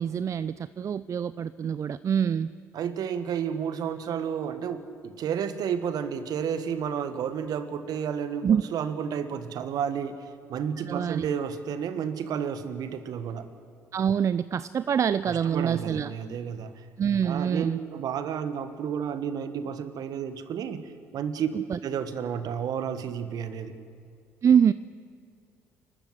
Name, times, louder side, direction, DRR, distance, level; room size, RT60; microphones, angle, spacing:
voice 1, 0.0-2.5 8.4-8.6 10.9-11.3 13.9-16.1 17.0-17.8 21.5-21.8 24.4-24.7, right 8 dB, 45° right, 16 dB, 0.5 m, -25 dB
voice 2, 2.7-13.5 15.2-16.8 17.2-21.5 21.8-23.8, right 7 dB, 60° right, 11 dB, 1.5 m, -31 dB
29.0 x 13.0 x 8.0 m, 2.4 s
hypercardioid pair, 50°, 7 cm